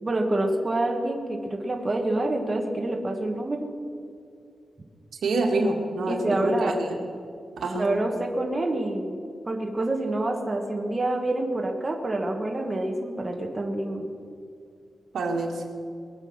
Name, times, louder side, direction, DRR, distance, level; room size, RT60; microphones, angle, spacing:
voice 1, 0.0-3.6 6.1-6.8 7.7-9.2 9.5-14.1, right 2 dB, 20° right, 1 dB, 1.3 m, -27 dB
voice 2, 5.2-6.7 7.6-7.9 15.1-15.6, right 2 dB, 80° right, 1 dB, 2.1 m, -26 dB
22.0 x 7.7 x 6.4 m, 2.4 s
wide cardioid pair, 165°, 0 cm